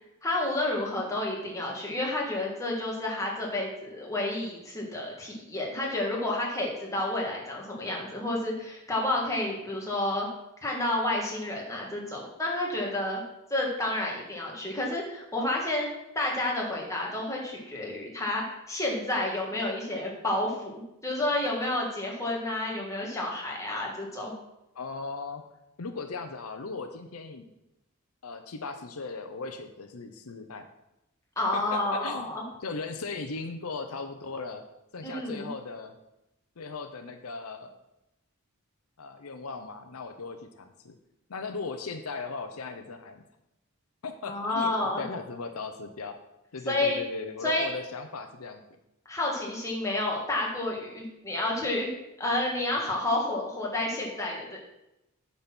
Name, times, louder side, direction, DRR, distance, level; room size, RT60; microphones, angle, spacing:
voice 1, 0.2-10.3 10.6-13.2 13.5-15.9 16.2-24.3 31.4-32.4 35.0-35.5 44.3-45.0 46.7-47.0 47.4-47.7 49.1-51.9 52.2-54.6, left 1 dB, 15° left, -2 dB, 1.8 m, -30 dB
voice 2, 24.7-25.4 25.8-27.4 28.2-30.7 31.5-32.3 32.6-34.6 34.9-36.0 36.6-37.7 39.0-41.0 41.3-43.2 44.0-46.2 46.5-48.8, left 4 dB, 85° left, 7 dB, 0.7 m, -38 dB
8.7 x 4.3 x 6.0 m, 0.88 s
head